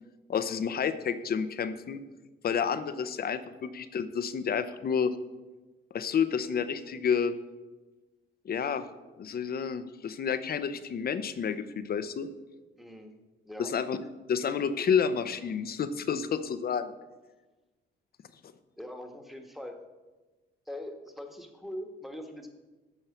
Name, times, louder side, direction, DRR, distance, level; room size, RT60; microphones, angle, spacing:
voice 1, 0.3-2.0 2.4-5.1 5.9-7.3 8.4-8.8 9.2-12.3 13.6-16.9, left 7 dB, 50° left, 12 dB, 0.7 m, -30 dB
voice 2, 12.8-13.1 13.4-13.7 18.8-19.8 20.7-22.5, left 1 dB, ahead, 4 dB, 1.4 m, -42 dB
9.1 x 5.5 x 7.2 m, 1.2 s
cardioid pair, 90°, 20 cm